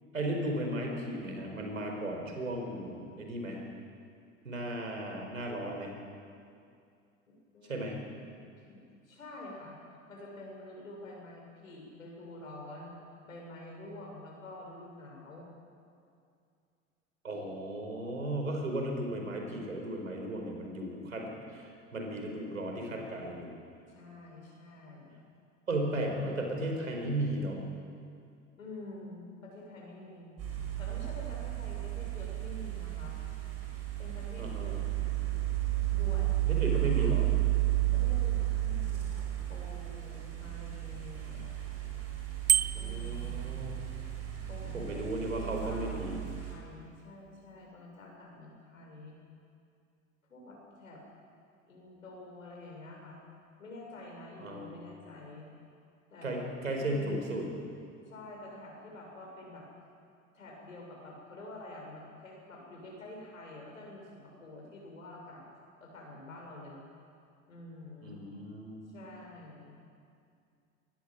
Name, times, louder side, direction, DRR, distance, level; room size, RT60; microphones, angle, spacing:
voice 1, 0.1-3.6 4.4-5.9 7.7-8.0 17.2-23.5 25.7-27.6 34.4-34.7 36.5-37.3 42.7-43.8 44.7-46.2 54.4-54.7 56.2-57.5 68.0-68.8, right 1 dB, 85° right, 2 dB, 5.2 m, -35 dB
voice 2, 7.3-9.8 10.1-13.0 13.3-15.5 23.9-25.3 28.6-30.5 30.8-33.2 34.0-35.1 35.9-37.1 37.9-41.5 42.8-43.6 44.5-49.2 50.3-51.0 51.7-53.2 53.6-55.5 56.1-56.5 56.8-57.5 58.1-59.7 60.3-65.4 65.8-66.8 67.5-68.1 68.9-69.8, left 2 dB, 85° left, -1 dB, 7.2 m, -48 dB
sound 1, 30.4-46.5, right 15 dB, 40° right, 6.7 m, -33 dB
Bicycle bell, 42.5-43.1, right 9 dB, 20° right, 0.9 m, -26 dB
23.0 x 20.0 x 7.9 m, 2.4 s
figure-of-eight pair, 80°, 39 cm